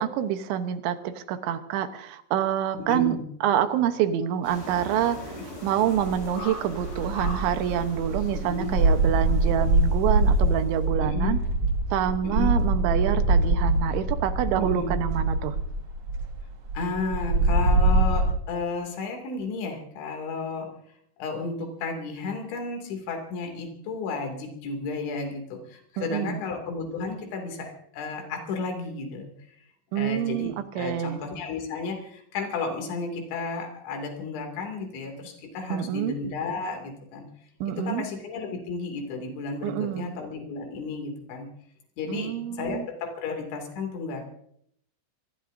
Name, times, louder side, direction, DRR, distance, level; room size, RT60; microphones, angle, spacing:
voice 1, 0.0-3.2 3.4-5.3 5.6-11.4 11.9-15.6 26.0-26.4 29.9-31.2 35.7-36.1 37.6-38.0 39.6-40.1 42.1-42.8, right 10 dB, 90° right, 9 dB, 3.5 m, -27 dB
voice 2, 2.7-3.2 5.3-5.4 8.5-8.8 11.0-11.4 12.2-12.5 14.6-15.0 16.7-20.7 21.2-29.3 30.0-37.3 37.7-41.5 42.0-44.3, left 4 dB, 80° left, 3 dB, 5.0 m, -33 dB
sound 1, 4.4-10.9, left 1 dB, 45° left, 8.8 m, -41 dB
sound 2, 5.9-6.4 6.7-18.3, right 2 dB, 65° right, 1.3 m, -24 dB
25.5 x 21.0 x 2.7 m, 0.69 s
omnidirectional pair, 5.2 m